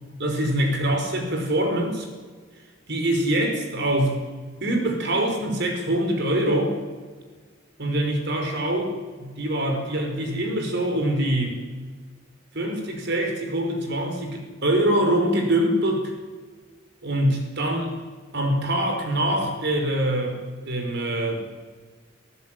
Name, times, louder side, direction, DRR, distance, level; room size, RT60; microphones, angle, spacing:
voice 1, 0.2-2.1 2.9-4.2 4.6-6.7 7.8-11.6 12.5-16.1 17.0-17.9 18.3-20.4 20.6-21.4, right 1 dB, 60° right, 4 dB, 5.1 m, -24 dB
25.5 x 15.0 x 9.2 m, 1.5 s
head